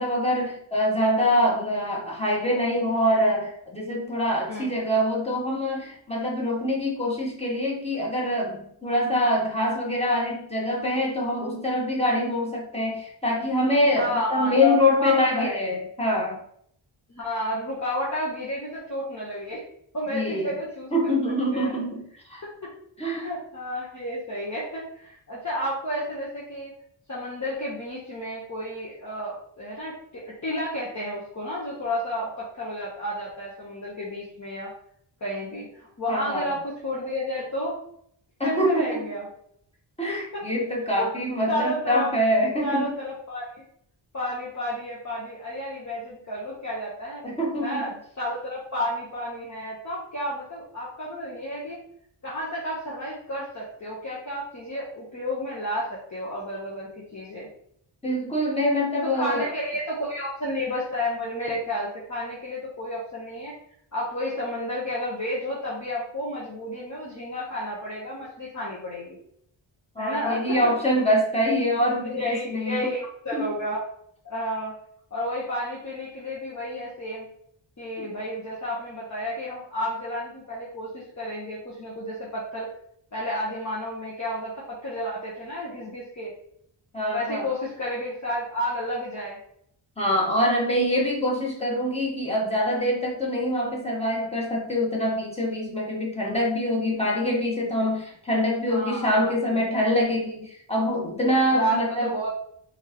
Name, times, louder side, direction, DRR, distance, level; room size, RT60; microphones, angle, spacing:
voice 1, 0.0-16.4 20.1-20.5 20.9-22.4 23.0-23.3 36.1-36.6 38.4-39.1 40.0-42.9 47.2-47.9 58.0-59.5 69.9-72.9 73.3-73.4 86.9-87.5 90.0-102.1, left 1 dB, 15° left, -3 dB, 1.3 m, -25 dB
voice 2, 13.9-15.6 17.1-19.6 19.9-20.9 21.5-21.8 22.6-22.7 23.1-26.7 27.1-34.7 35.2-37.8 38.4-39.3 41.0-41.1 41.5-42.1 42.6-43.6 44.1-47.2 47.6-51.8 52.2-57.5 59.1-63.5 63.9-69.2 70.0-70.7 72.0-73.8 74.2-74.7 75.1-77.3 77.8-82.7 83.1-86.3 87.1-89.4 98.7-99.7 101.5-102.3, equal, 35° left, -6 dB, 1.1 m, -31 dB
4.4 x 3.5 x 3.0 m, 0.67 s
wide cardioid pair, 95°, 47 cm